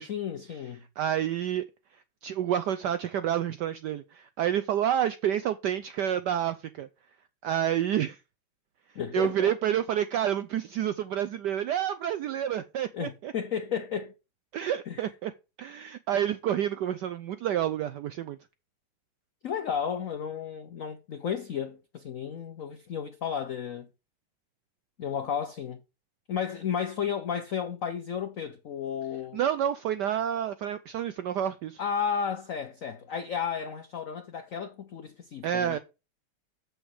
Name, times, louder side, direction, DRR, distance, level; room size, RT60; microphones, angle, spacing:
voice 1, 0.0-0.8 8.9-9.5 12.9-14.1 14.9-15.0 19.4-23.9 25.0-25.8 26.3-29.4 31.8-35.8, left 7 dB, 80° left, 0.7 m, -33 dB
voice 2, 1.0-1.6 2.2-6.9 7.4-8.2 9.1-13.3 14.5-15.3 15.6-18.4 29.3-31.8 35.4-35.8, right 10 dB, 80° right, 0.9 m, -29 dB
8.0 x 6.3 x 4.8 m
omnidirectional pair, 2.4 m